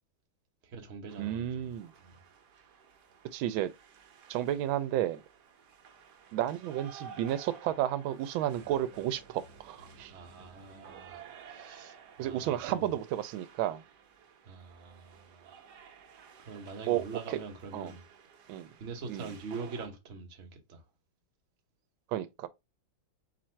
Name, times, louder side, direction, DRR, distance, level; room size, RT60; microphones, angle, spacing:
voice 1, 0.6-1.7 2.0-2.1 10.1-12.9 14.4-15.6 16.4-18.0 18.8-20.8, right 4 dB, 40° right, 1.2 m, -44 dB
sound 1, 1.1-19.9, right 6 dB, 65° right, 1.3 m, -54 dB
voice 2, 1.2-1.9 3.3-3.7 4.3-5.2 6.3-10.1 12.2-13.8 16.9-17.4 17.7-17.9 18.5-18.7 19.1-19.3 22.1-22.5, right 12 dB, 90° right, 1.4 m, -32 dB
4.3 x 2.5 x 4.4 m
omnidirectional pair, 2.1 m